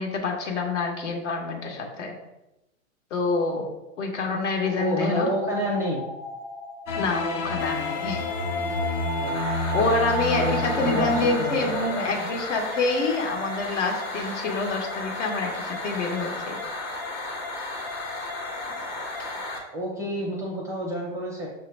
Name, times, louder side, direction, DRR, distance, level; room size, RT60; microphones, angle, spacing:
voice 1, 0.0-2.1 3.1-3.7 4.0-5.3 7.0-8.2 9.7-16.6, left 3 dB, 65° left, 2 dB, 1.1 m, -27 dB
sound 1, 4.1-11.9, right 2 dB, 20° left, 1.0 m, -36 dB
voice 2, 4.8-6.0 9.2-9.4 10.4-12.3 19.7-21.5, equal, 10° right, -2 dB, 0.5 m, -29 dB
sound 2, 6.9-12.6, left 2 dB, 50° left, 0.7 m, -31 dB
sound 3, 7.6-19.6, left 3 dB, 85° left, 1.2 m, -34 dB
6.2 x 2.2 x 3.2 m, 0.95 s
hypercardioid pair, 125°, 40 cm